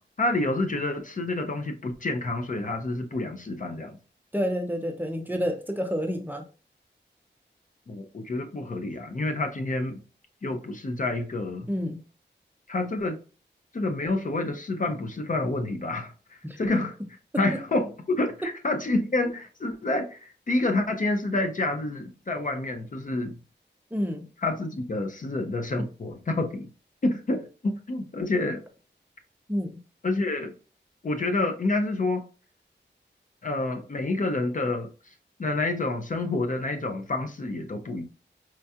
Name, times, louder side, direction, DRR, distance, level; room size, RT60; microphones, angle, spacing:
voice 1, 0.2-4.0 7.9-10.0 10.4-11.7 12.7-13.2 13.7-17.0 17.4-23.4 24.4-26.7 27.0-28.6 30.0-30.5 31.0-32.2 33.4-34.9 35.4-38.0, left 2 dB, 45° left, 0.5 m, -28 dB
voice 2, 4.3-6.4 11.7-12.0 16.4-16.6 23.9-24.2 29.5-29.8, equal, 10° right, 0.6 m, -29 dB
4.4 x 2.3 x 2.7 m
wide cardioid pair, 100°, 19 cm